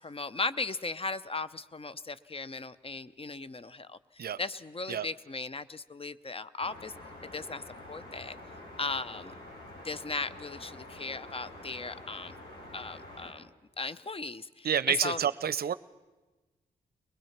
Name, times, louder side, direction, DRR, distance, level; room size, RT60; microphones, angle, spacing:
voice 1, 0.0-6.9 7.3-7.6 7.9-8.4 8.8-9.3 9.8-12.4 12.7-13.5 13.8-15.2, left 3 dB, 30° left, 16 dB, 0.7 m, -37 dB
sound 1, 6.6-13.3, left 1 dB, 75° left, 4.6 m, -47 dB
voice 2, 14.6-15.7, right 8 dB, 60° right, 16 dB, 0.6 m, -28 dB
21.5 x 20.0 x 5.9 m, 1.2 s
supercardioid pair, 40°, 18 cm